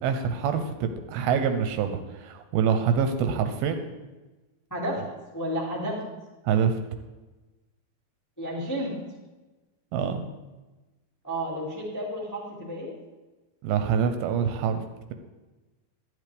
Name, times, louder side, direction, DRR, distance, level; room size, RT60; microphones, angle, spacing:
voice 1, 0.0-3.8 6.5-6.7 9.9-10.2 13.6-14.8, right 7 dB, 80° right, 7 dB, 2.5 m, -25 dB
voice 2, 4.7-5.0 5.3-5.9 8.4-8.9 11.2-12.9, equal, 10° left, -5 dB, 0.9 m, -31 dB
11.5 x 10.5 x 3.4 m, 1.2 s
omnidirectional pair, 4.6 m